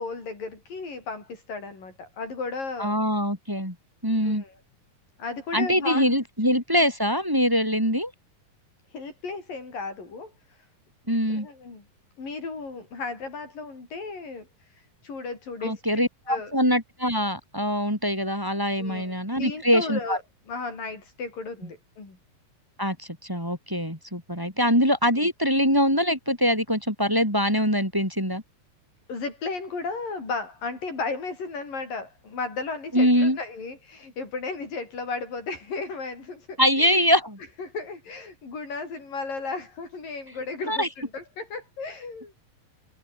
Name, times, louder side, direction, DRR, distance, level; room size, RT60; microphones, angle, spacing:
voice 1, 0.0-3.0 4.2-4.5 5.2-6.2 8.9-10.7 11.3-11.8 12.2-15.8 16.3-16.5 18.8-20.2 20.5-22.2 29.1-37.0 37.6-42.3, left 4 dB, 70° left, 9.1 m, -35 dB
voice 2, 2.8-3.8 4.0-4.4 5.5-8.1 11.1-11.5 15.6-20.2 22.8-28.4 32.9-33.4 36.6-37.4 40.7-40.9, equal, 5° right, 7.6 m, -23 dB
omnidirectional pair, 4.1 m